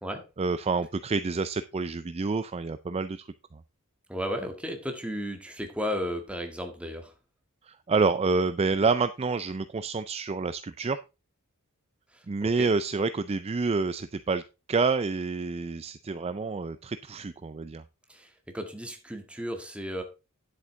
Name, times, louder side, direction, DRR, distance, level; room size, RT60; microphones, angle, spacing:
voice 1, 0.4-3.3 7.6-11.0 12.3-14.4 14.7-17.8, right 4 dB, 30° right, 12 dB, 0.4 m, -28 dB
voice 2, 4.1-7.1 12.1-12.7 18.1-20.0, equal, 5° right, 4 dB, 1.7 m, -34 dB
10.0 x 8.0 x 3.8 m, 0.28 s
head